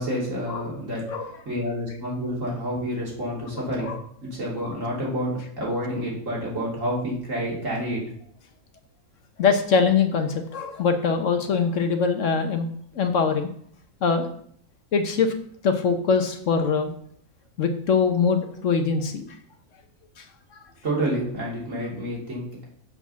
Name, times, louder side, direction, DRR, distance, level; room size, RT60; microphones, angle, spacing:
voice 1, 0.0-3.9 4.2-8.0 20.8-22.6, equal, 60° right, -4 dB, 3.1 m, -29 dB
voice 2, 9.4-12.7 12.9-13.5 14.0-14.3 14.9-15.3 15.6-16.9 17.6-19.3 20.2-20.3 20.5-20.6, left 5 dB, 60° left, 7 dB, 1.1 m, -23 dB
7.1 x 4.9 x 6.8 m, 0.63 s
omnidirectional pair, 1.5 m